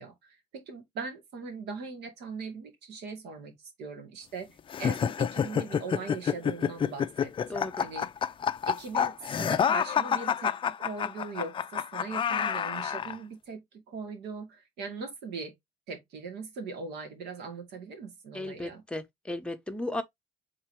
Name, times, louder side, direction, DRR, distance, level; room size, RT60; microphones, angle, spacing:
voice 1, 0.0-8.1 8.7-15.5 15.9-18.8, right 4 dB, 80° right, 1.9 m, -40 dB
sound 1, 4.7-13.2, left 8 dB, 30° left, 0.4 m, -28 dB
voice 2, 7.5-7.9 18.3-20.0, left 1 dB, 5° left, 0.8 m, -35 dB
3.7 x 2.8 x 4.7 m
cardioid pair, 110°, 17 cm